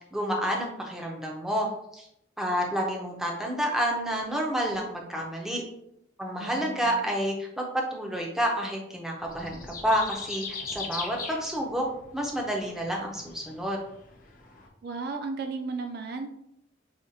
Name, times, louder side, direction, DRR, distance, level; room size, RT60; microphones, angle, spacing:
voice 1, 0.1-2.1 2.4-5.6 6.2-11.9 12.1-13.8, equal, 5° right, -1 dB, 0.6 m, -29 dB
voice 2, 6.4-7.0 14.8-16.3, right 4 dB, 60° right, 6 dB, 0.3 m, -35 dB
sound 1, 9.2-14.7, left 4 dB, 45° left, 0.6 m, -40 dB
4.9 x 2.3 x 2.7 m, 0.77 s
head